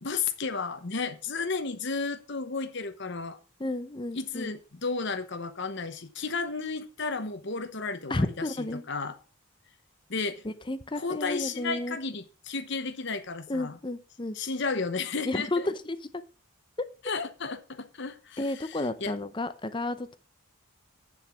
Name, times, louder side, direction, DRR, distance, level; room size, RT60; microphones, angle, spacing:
voice 1, 0.0-3.4 4.1-9.2 10.1-10.4 11.0-13.8 14.3-15.7 17.0-19.1, left 4 dB, 55° left, 0.9 m, -33 dB
voice 2, 3.6-4.5 8.1-8.8 10.4-12.0 13.5-14.4 15.2-16.0 18.4-20.2, left 2 dB, 20° left, 0.6 m, -32 dB
8.9 x 7.3 x 6.0 m
head